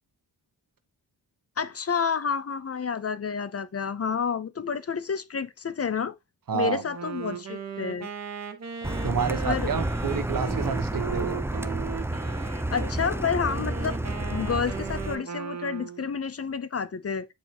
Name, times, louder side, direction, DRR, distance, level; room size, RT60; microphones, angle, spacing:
voice 1, 1.6-6.2 6.5-8.1 9.5-9.7 12.7-17.3, left 6 dB, 40° left, 0.6 m, -29 dB
voice 2, 6.5-6.8 9.0-11.4 13.6-13.7, right 6 dB, 60° right, 1.1 m, -29 dB
Wind instrument woodwind instrument, 6.8-12.9 13.4-16.1, right 6 dB, 45° right, 1.3 m, -37 dB
Car, 8.8-15.2, right 1 dB, 5° right, 0.5 m, -30 dB
7.8 x 4.4 x 2.9 m
wide cardioid pair, 85°, 37 cm